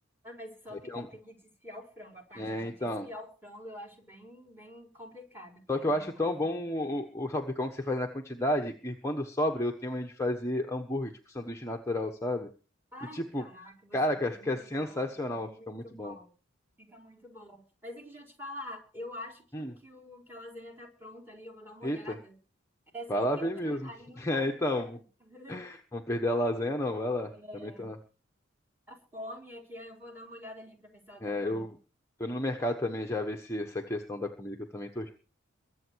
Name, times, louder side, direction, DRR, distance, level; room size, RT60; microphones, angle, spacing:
voice 1, 0.2-6.5 12.9-16.3 16.8-22.4 22.9-25.6 27.3-27.9 28.9-31.7, left 1 dB, 10° right, 3 dB, 4.3 m, -47 dB
voice 2, 2.4-3.1 5.7-12.5 13.1-13.4 13.9-16.1 19.5-19.7 21.8-22.2 23.1-23.9 24.2-25.0 25.5-27.9 31.2-31.7 32.2-35.1, left 1 dB, 15° left, 2 dB, 1.2 m, -32 dB
22.5 x 8.0 x 4.7 m, 0.37 s
head